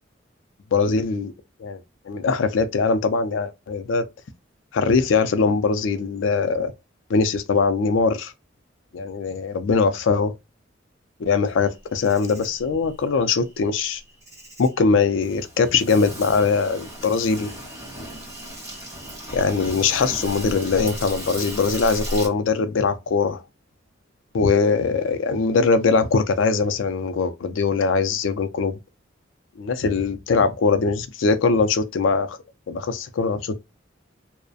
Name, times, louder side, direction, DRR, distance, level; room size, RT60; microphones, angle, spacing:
voice 1, 0.7-1.3 1.6-1.8 2.1-4.0 4.7-6.7 7.1-8.3 8.9-10.3 11.2-14.0 14.6-17.5 19.3-23.4 24.3-28.8 29.6-32.4 32.7-33.6, left 4 dB, 80° left, 0.4 m, -21 dB
Insect, 11.6-22.3, right 1 dB, 15° right, 0.9 m, -36 dB
2.4 x 2.0 x 2.5 m
head